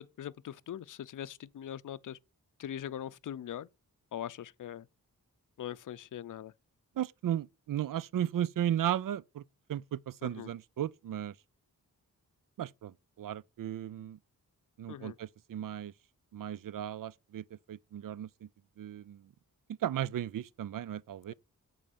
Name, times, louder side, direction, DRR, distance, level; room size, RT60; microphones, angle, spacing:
voice 1, 0.0-2.2 2.6-3.7 4.1-4.9 5.6-6.5 10.2-10.5 14.9-15.2, left 10 dB, 60° left, 0.5 m, -41 dB
voice 2, 7.0-9.4 9.7-11.3 12.6-14.2 14.8-15.9 16.3-18.5 18.8-19.3 19.7-21.3, right 11 dB, 65° right, 0.5 m, -35 dB
8.6 x 3.8 x 6.8 m
wide cardioid pair, 70°, 35 cm